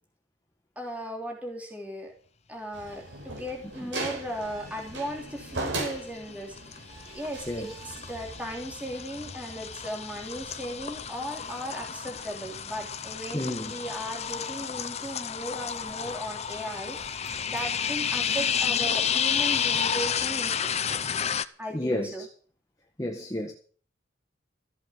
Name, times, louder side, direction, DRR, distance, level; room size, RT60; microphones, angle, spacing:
voice 1, 0.7-2.1 2.5-6.8 7.1-21.2 21.6-22.3, equal, 10° right, 3.3 m, -37 dB
sound 1, 2.7-17.9, right 2 dB, 70° right, 5.0 m, -42 dB
sound 2, 5.1-5.6 5.9-21.5, left 7 dB, 35° left, 0.7 m, -31 dB
voice 2, 13.3-13.7 21.7-22.3 23.0-23.5, left 1 dB, 20° left, 1.8 m, -31 dB
14.5 x 7.9 x 8.4 m
head